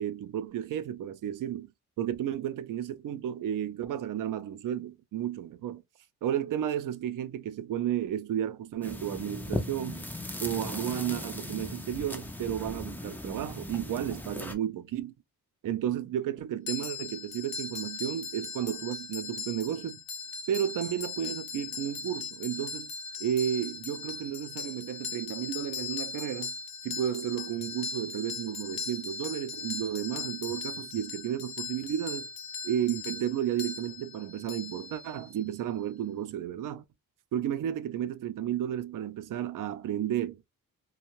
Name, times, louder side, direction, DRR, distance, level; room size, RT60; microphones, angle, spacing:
voice 1, 0.0-1.7 2.0-5.8 6.2-10.1 10.4-15.1 15.6-20.0 20.5-22.9 23.2-26.5 26.8-32.3 32.6-36.8 37.3-40.4, right 10 dB, 60° right, 0.5 m, -32 dB
sound 1, 8.8-14.6, left 1 dB, 5° left, 0.4 m, -38 dB
sound 2, 16.7-35.4, left 5 dB, 70° left, 0.6 m, -39 dB
2.6 x 2.2 x 2.9 m
cardioid pair, 115°, 36 cm